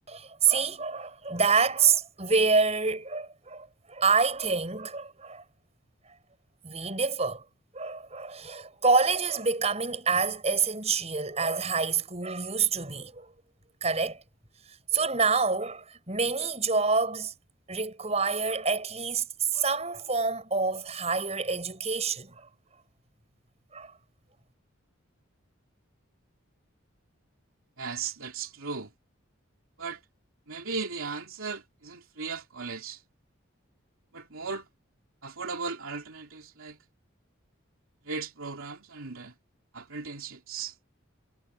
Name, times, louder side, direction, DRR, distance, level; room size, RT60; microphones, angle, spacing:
voice 1, 0.1-5.4 6.6-7.4 7.7-13.3 13.8-14.2 14.9-17.3 17.7-19.3 19.5-22.5 23.7-23.9, right 4 dB, 30° right, 5.9 m, -27 dB
voice 2, 27.8-28.9 29.8-30.0 30.5-33.0 34.1-34.7 35.2-36.8 38.0-39.3 39.7-40.7, right 4 dB, 90° right, 2.7 m, -37 dB
head